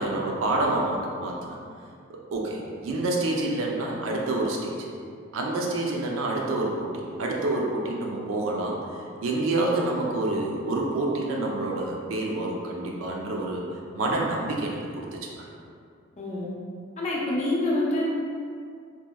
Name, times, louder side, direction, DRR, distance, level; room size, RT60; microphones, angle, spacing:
voice 1, 0.0-1.5 2.1-4.8 5.3-8.8 9.2-13.6 13.9-15.4, right 2 dB, 80° right, -1 dB, 0.4 m, -28 dB
voice 2, 16.2-16.5 17.0-18.0, left 1 dB, 35° left, -5 dB, 0.4 m, -26 dB
2.8 x 2.1 x 2.2 m, 2.3 s
head